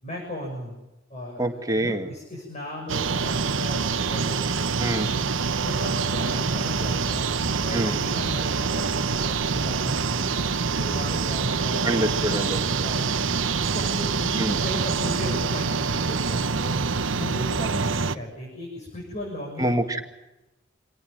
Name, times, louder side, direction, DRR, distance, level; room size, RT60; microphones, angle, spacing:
voice 1, 0.0-0.7 1.1-5.1 5.6-7.3 7.6-10.4 10.7-13.3 13.6-16.8 17.2-19.8, equal, 35° left, 0 dB, 6.8 m, -36 dB
voice 2, 1.4-2.1 4.8-5.1 7.7-8.0 11.8-12.6 14.4-14.6 19.6-20.0, right 1 dB, 20° right, 5 dB, 2.0 m, -25 dB
sound 1, 2.9-18.2, right 4 dB, 85° right, 0.9 m, -25 dB
27.0 x 18.5 x 9.1 m, 1.0 s
head